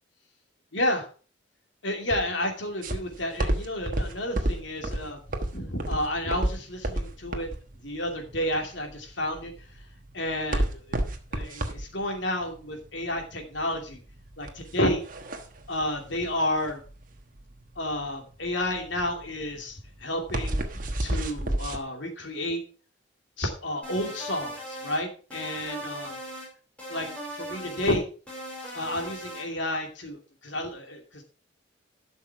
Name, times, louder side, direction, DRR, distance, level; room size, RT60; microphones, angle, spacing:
voice 1, 0.7-1.0 1.8-5.2 5.5-7.5 7.8-9.8 10.1-11.0 11.3-14.0 14.4-15.0 15.7-16.8 17.8-22.6 23.4-26.2 26.9-28.1 28.7-31.2, left 1 dB, 65° left, 2 dB, 2.6 m, -31 dB
sound 1, 2.8-21.8, right 1 dB, 45° right, 1.3 m, -31 dB
sound 2, 23.8-25.0 25.3-26.5 26.8-28.0 28.3-29.5, right 1 dB, 5° left, 5.1 m, -39 dB
12.0 x 6.3 x 4.6 m, 0.38 s
head